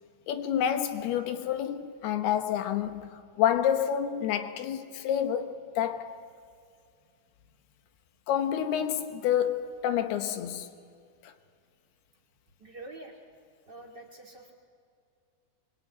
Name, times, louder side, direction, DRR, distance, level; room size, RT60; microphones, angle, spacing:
voice 1, 0.3-6.2 8.3-10.7 11.2-11.3, left 9 dB, 90° left, 3.2 m, -29 dB
voice 2, 12.6-13.2 13.7-14.5, right 2 dB, 35° right, 2.3 m, -46 dB
24.5 x 22.5 x 9.2 m
omnidirectional pair, 4.4 m